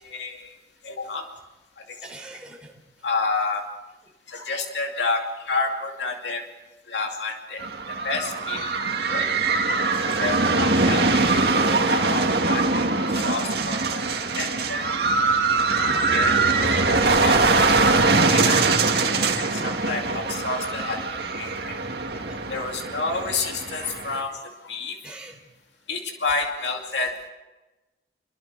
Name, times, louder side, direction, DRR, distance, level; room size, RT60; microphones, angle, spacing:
voice 1, 0.0-0.5 0.8-1.3 3.0-3.6 4.3-6.4 6.9-7.6 8.0-8.7 9.1-9.3 10.0-12.9 13.1-14.0 14.4-15.1 16.1-17.4 18.2-18.8 19.5-21.0 21.4-21.5 22.5-25.0 25.9-27.1, left 3 dB, 75° left, 2 dB, 2.5 m, -29 dB
voice 2, 2.0-2.7 11.6-11.8 13.8-14.0 15.9-16.2 19.0-19.4 22.3-22.4 25.0-25.4, right 2 dB, 5° right, -1 dB, 3.9 m, -43 dB
sound 1, 7.6-24.2, right 3 dB, 60° right, 2.2 m, -22 dB
28.0 x 22.5 x 5.0 m, 1.1 s
head